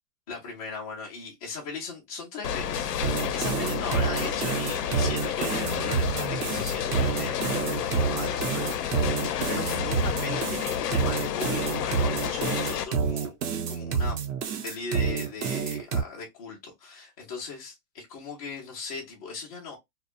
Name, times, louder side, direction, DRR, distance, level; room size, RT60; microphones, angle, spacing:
voice 1, 0.3-13.4 13.7-14.2 14.6-19.8, left 4 dB, 25° left, 0.6 m, -38 dB
sound 1, 2.4-12.8, left 9 dB, 85° left, 0.6 m, -30 dB
sound 2, 3.0-16.0, right 6 dB, 75° right, 0.8 m, -29 dB
2.7 x 2.2 x 2.4 m
hypercardioid pair, 175°, 47 cm